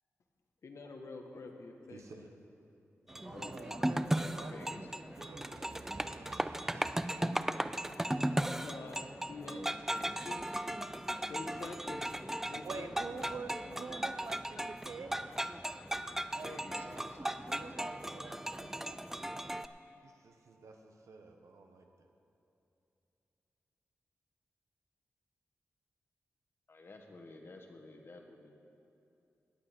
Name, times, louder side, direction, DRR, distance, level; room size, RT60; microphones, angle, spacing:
voice 1, 0.6-2.0 8.5-9.7 10.3-10.4 11.3-12.2 12.4-13.8 16.0-16.1, left 3 dB, 70° left, 4 dB, 1.2 m, -47 dB
voice 2, 1.9-2.8 3.1-7.4 16.3-19.0 19.5-22.1, right 3 dB, 85° right, 4 dB, 1.1 m, -53 dB
sound 1, 3.1-19.7, right 1 dB, 10° right, 0.4 m, -37 dB
voice 3, 4.2-4.8 9.5-10.4 16.4-17.2 17.5-18.3 26.7-28.6, left 2 dB, 50° left, 3 dB, 1.4 m, -52 dB
voice 4, 5.2-7.2 12.6-15.2, right 4 dB, 60° right, 9 dB, 0.6 m, -46 dB
17.5 x 8.9 x 4.4 m, 2.8 s
wide cardioid pair, 85°, 5 cm